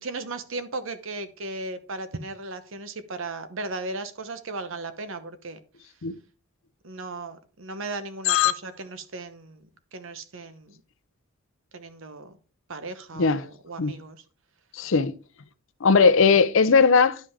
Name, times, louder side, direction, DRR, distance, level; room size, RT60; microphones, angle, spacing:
voice 1, 0.0-5.6 6.8-10.8 11.7-12.4 12.7-14.2, right 3 dB, 65° right, 0.9 m, -36 dB
voice 2, 14.7-15.1 15.8-17.2, left 5 dB, 65° left, 0.6 m, -18 dB
11.5 x 5.5 x 3.5 m
head